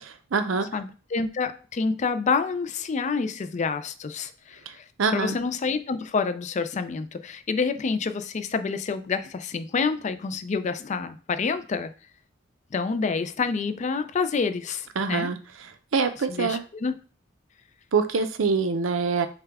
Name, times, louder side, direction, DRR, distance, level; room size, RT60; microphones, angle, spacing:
voice 1, 0.0-0.7 5.0-5.4 15.0-15.4 15.9-16.6 17.9-19.3, right 4 dB, 90° right, 9 dB, 0.6 m, -24 dB
voice 2, 0.7-4.8 5.1-11.9 12.7-15.3 16.3-16.9, left 5 dB, 35° left, 11 dB, 0.4 m, -28 dB
6.7 x 2.2 x 3.4 m, 0.39 s
head